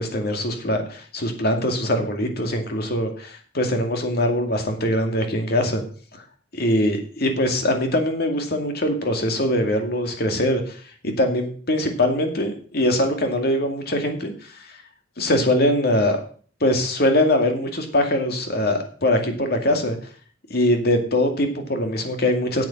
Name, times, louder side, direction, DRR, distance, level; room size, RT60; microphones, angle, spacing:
voice 1, 0.0-5.8 6.1-6.2 6.5-14.6 15.2-16.2 16.6-20.0 20.5-22.6, left 1 dB, 60° left, 4 dB, 2.4 m, -22 dB
9.2 x 8.4 x 5.9 m, 0.44 s
head